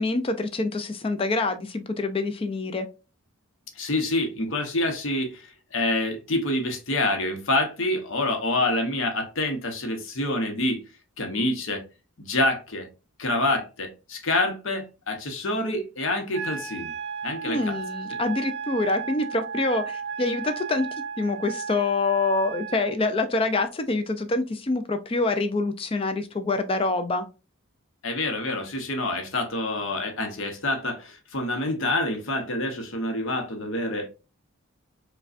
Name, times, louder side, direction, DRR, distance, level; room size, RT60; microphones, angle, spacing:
voice 1, 0.0-2.9 17.5-20.9 21.2-27.3, left 3 dB, 25° left, 8 dB, 0.3 m, -26 dB
voice 2, 3.8-10.8 11.2-11.8 12.2-12.9 13.2-16.9 17.2-17.7 28.0-34.1, left 2 dB, 65° left, 4 dB, 0.8 m, -27 dB
Wind instrument woodwind instrument, 16.3-22.9, right 6 dB, 50° right, 0.4 m, -34 dB
4.9 x 2.2 x 2.4 m, 0.31 s
head